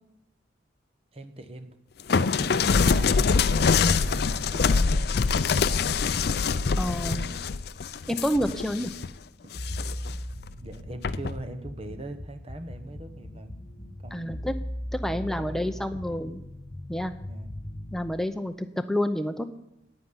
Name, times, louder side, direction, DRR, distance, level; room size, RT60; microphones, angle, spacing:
voice 1, 1.1-1.8 2.2-5.8 6.4-6.5 7.1-7.4 9.4-9.5 10.6-13.6 14.0-14.3 15.0-16.2 17.3-17.5, right 2 dB, 30° right, 9 dB, 1.0 m, -42 dB
sound 1, 2.1-9.1 9.5-10.2 11.0-11.4, left 5 dB, 55° left, 0.4 m, -24 dB
voice 2, 6.8-7.3 8.1-8.9 14.1-14.5 14.9-16.4 16.9-17.1 17.9-19.5, equal, ahead, 8 dB, 0.6 m, -29 dB
sound 2, 9.5-18.2, left 1 dB, 35° left, 1.0 m, -38 dB
9.2 x 9.1 x 9.8 m, 0.86 s
head